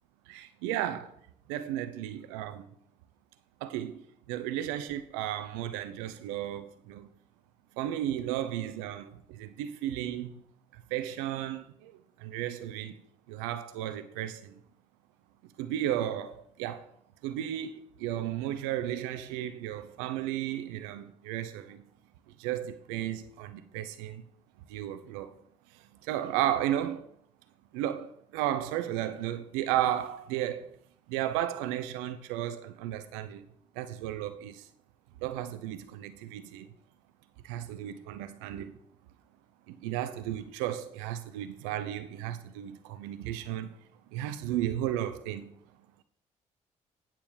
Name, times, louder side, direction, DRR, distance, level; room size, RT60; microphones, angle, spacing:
voice 1, 0.3-1.1 1.5-2.7 3.6-7.1 7.7-10.4 10.7-13.0 13.3-14.6 15.4-16.9 17.2-21.9 22.4-24.2 24.7-25.3 25.7-27.1 27.7-30.8 31.1-33.5 33.7-34.7 35.2-36.7 37.4-38.8 39.7-43.8 44.1-45.5, right 12 dB, 85° right, 0.7 m, -34 dB
9.1 x 7.2 x 4.8 m
hypercardioid pair, 50°, 16 cm